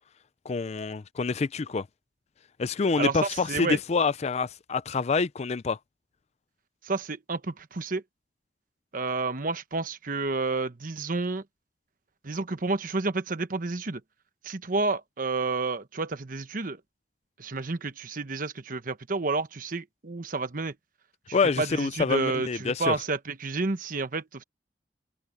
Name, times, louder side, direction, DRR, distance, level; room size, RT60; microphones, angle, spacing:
voice 1, 0.5-1.9 2.6-5.8 21.3-22.9, left 4 dB, 40° left, 0.4 m, -27 dB
voice 2, 3.0-3.8 6.8-8.0 8.9-11.4 12.2-14.0 14.4-16.8 17.4-20.7 21.3-24.4, right 3 dB, 50° right, 1.1 m, -30 dB
head